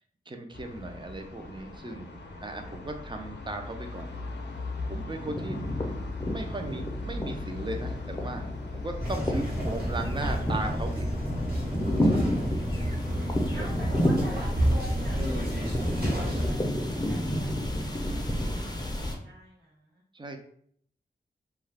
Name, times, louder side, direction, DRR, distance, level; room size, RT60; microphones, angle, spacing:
voice 1, 0.3-2.1 2.4-4.1 4.9-6.0 6.2-11.1 11.8-12.4 13.6-13.7 20.1-20.4, right 2 dB, 25° right, 5 dB, 0.4 m, -37 dB
sound 1, 0.5-19.2, left 3 dB, 85° left, 0.5 m, -41 dB
sound 2, 4.0-4.6 4.9-19.1, equal, 25° left, 0.5 m, -31 dB
sound 3, 9.0-16.5, equal, 60° right, 1.1 m, -30 dB
voice 2, 13.2-15.9 16.3-17.8 18.2-20.0, right 1 dB, 80° right, -6 dB, 0.8 m, -46 dB
2.3 x 2.2 x 3.2 m, 0.62 s
wide cardioid pair, 65°, 18 cm